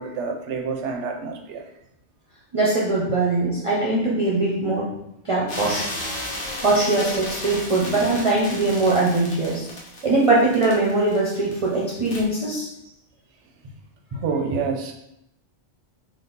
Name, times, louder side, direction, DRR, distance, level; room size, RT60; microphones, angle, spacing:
voice 1, 0.0-1.7 6.1-6.3 14.1-14.9, right 5 dB, 90° right, 3 dB, 0.9 m, -28 dB
voice 2, 2.5-4.9 5.2-5.9 6.6-9.7 10.0-12.7, right 2 dB, 35° right, -5 dB, 0.6 m, -21 dB
sound 1, 5.5-11.7 12.1-12.2, left 1 dB, 80° left, 1.3 m, -33 dB
3.8 x 2.4 x 3.8 m, 0.81 s
omnidirectional pair, 1.2 m